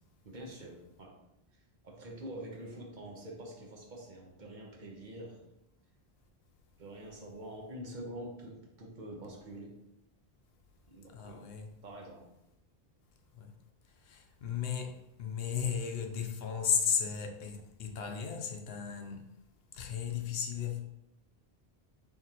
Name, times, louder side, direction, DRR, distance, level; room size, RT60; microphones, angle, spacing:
voice 1, 0.2-1.2 1.8-5.4 6.8-9.8 10.9-11.6 11.8-12.3, right 1 dB, 50° right, 0.9 m, -46 dB
voice 2, 11.1-11.7 13.3-13.5 14.0-19.2 19.7-20.8, left 7 dB, 75° left, 0.8 m, -35 dB
4.9 x 3.7 x 2.9 m
omnidirectional pair, 1.0 m